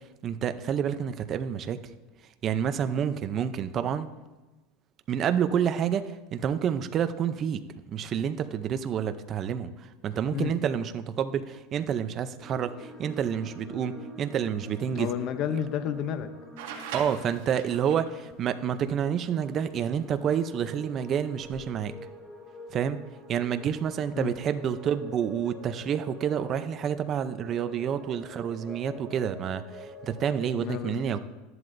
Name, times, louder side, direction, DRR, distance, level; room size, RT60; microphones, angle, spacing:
voice 1, 0.2-1.8 2.4-4.1 5.1-7.6 7.9-15.1 15.5-15.6 16.9-21.9 22.7-23.0 23.3-31.2, right 8 dB, 30° right, 10 dB, 0.5 m, -29 dB
sound 1, 12.4-30.5, equal, 5° left, 1.2 m, -46 dB
voice 2, 15.0-16.3 24.2-24.3 30.6-31.2, left 9 dB, 40° left, 10 dB, 0.6 m, -31 dB
sound 2, 16.6-18.1 20.0-20.1 21.3-21.6, right 7 dB, 75° right, 2.1 m, -40 dB
13.0 x 11.0 x 2.6 m, 1.1 s
supercardioid pair, 160°, 0 cm